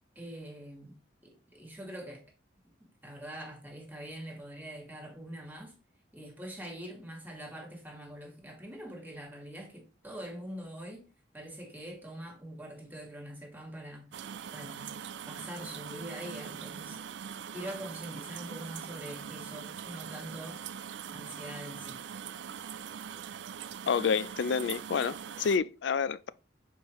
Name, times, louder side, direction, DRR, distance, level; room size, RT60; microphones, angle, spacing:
voice 1, 0.1-1.0 1.2-2.2 3.0-5.8 6.1-14.1 14.5-15.0 15.2-17.0 17.5-20.6 21.1-22.0, right 1 dB, 10° right, 1.7 m, -44 dB
sound 1, 14.1-25.6, right 8 dB, 70° right, 0.4 m, -42 dB
voice 2, 23.9-26.3, left 6 dB, 65° left, 0.4 m, -29 dB
7.3 x 4.6 x 3.0 m
head